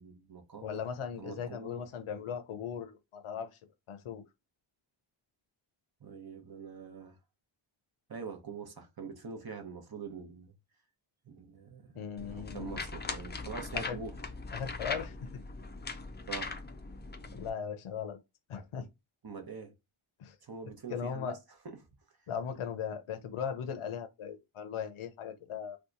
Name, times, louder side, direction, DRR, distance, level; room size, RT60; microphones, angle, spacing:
voice 1, 0.0-0.8 1.2-1.8 2.1-2.4 6.0-7.2 8.1-10.5 11.3-11.9 12.3-14.1 16.3-16.5 19.2-19.7 20.4-21.3 21.6-21.8, right 5 dB, 45° right, 0.8 m, -44 dB
voice 2, 0.6-3.5 3.9-4.2 11.9-12.8 13.7-14.0 14.5-15.3 17.3-18.2 18.5-18.9 20.2-20.4 20.9-21.4 22.3-25.8, left 7 dB, 75° left, 0.6 m, -38 dB
sound 1, 12.2-17.5, left 3 dB, 25° left, 0.4 m, -40 dB
2.8 x 2.3 x 3.7 m
wide cardioid pair, 95°, 50 cm